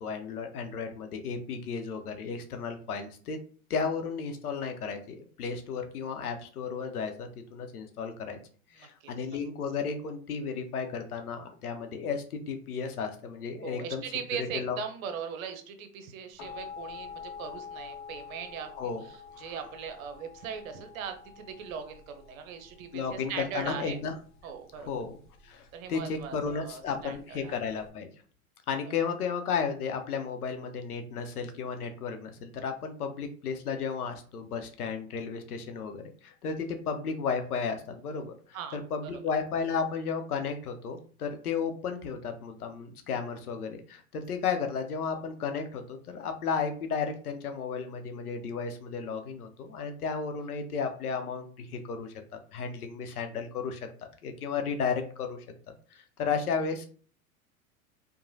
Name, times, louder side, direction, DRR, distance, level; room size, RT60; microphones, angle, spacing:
voice 1, 0.0-3.4 3.7-8.4 8.7-14.0 14.5-14.8 18.8-19.0 19.4-19.5 22.9-24.1 24.8-25.2 25.4-28.1 28.7-38.3 38.7-52.1 52.5-53.8 54.2-55.4 55.9-56.9, left 5 dB, 85° left, 6 dB, 0.7 m, -33 dB
voice 2, 8.8-9.1 13.6-24.0 24.4-24.9 25.7-27.6 38.5-39.1, right 7 dB, 65° right, 7 dB, 0.7 m, -40 dB
sound 1, 16.4-27.9, left 6 dB, 40° left, 0.7 m, -47 dB
3.0 x 2.1 x 2.6 m, 0.43 s
hypercardioid pair, 95°, 43 cm